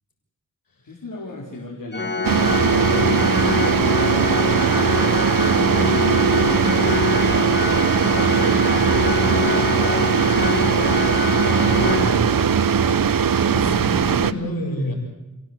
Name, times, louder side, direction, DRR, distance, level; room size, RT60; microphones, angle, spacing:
voice 1, 0.8-3.8 4.3-7.4 7.7-8.8 9.5-10.8 11.6-12.0, left 2 dB, 70° left, -1 dB, 4.8 m, -37 dB
Organ, 1.9-12.8, left 3 dB, 30° left, 1.5 m, -25 dB
sound 1, 2.2-14.3, right 7 dB, 75° right, 1.0 m, -19 dB
voice 2, 13.5-14.9, left 1 dB, 85° left, 3 dB, 6.7 m, -28 dB
29.5 x 17.0 x 8.4 m, 1.0 s
wide cardioid pair, 65°, 34 cm